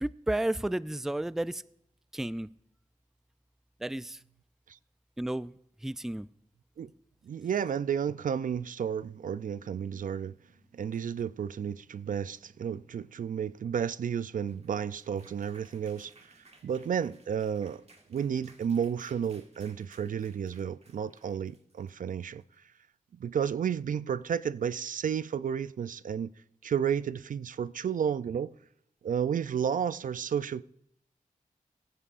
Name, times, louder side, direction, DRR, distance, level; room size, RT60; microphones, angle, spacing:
voice 1, 0.0-1.6 2.1-2.5 3.8-4.2 5.2-5.5 5.8-6.3, right 1 dB, 5° right, 0.4 m, -32 dB
voice 2, 7.2-10.3 10.7-16.4 16.6-17.8 18.1-22.4 23.2-26.3 26.6-28.5 29.0-30.6, right 8 dB, 70° right, 0.4 m, -32 dB
sound 1, 14.3-22.5, right 3 dB, 45° right, 1.7 m, -60 dB
20.5 x 9.8 x 2.5 m
cardioid pair, 40°, 14 cm